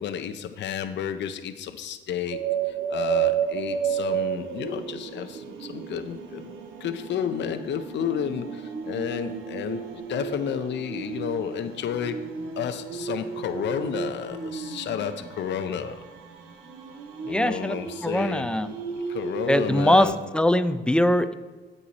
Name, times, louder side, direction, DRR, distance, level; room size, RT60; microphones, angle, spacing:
voice 1, 0.0-12.3 12.6-16.0 17.3-18.5 19.1-20.2, left 8 dB, 65° left, 8 dB, 0.6 m, -31 dB
sound 1, 2.1-19.8, right 6 dB, 90° right, 1.0 m, -45 dB
sound 2, 2.3-6.5 7.9-15.3 16.7-20.1, right 7 dB, 55° right, 1.7 m, -32 dB
voice 2, 17.3-18.7 19.5-21.3, left 1 dB, 5° left, 11 dB, 0.5 m, -22 dB
8.5 x 8.1 x 4.1 m, 1.3 s
cardioid pair, 90°, 20 cm